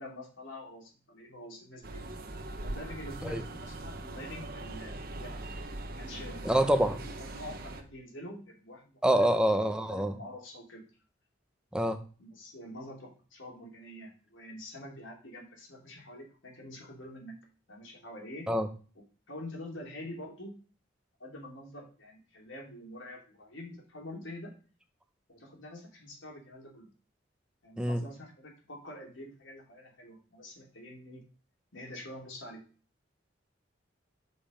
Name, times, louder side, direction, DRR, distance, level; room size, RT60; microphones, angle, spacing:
voice 1, 0.0-2.1 2.6-5.3 6.0-9.0 9.5-9.6 9.9-10.8 12.2-17.4 17.7-18.5 19.3-20.6 21.2-24.5 25.3-26.9 27.6-31.2 31.7-32.6, left 1 dB, 80° left, 3.1 m, -46 dB
sound 1, 1.8-7.8, right 2 dB, 50° right, 1.1 m, -41 dB
voice 2, 6.4-7.0 9.0-10.2 11.7-12.0 18.5-18.7 27.8-28.0, right 1 dB, 5° right, 0.8 m, -26 dB
7.5 x 5.4 x 5.0 m
head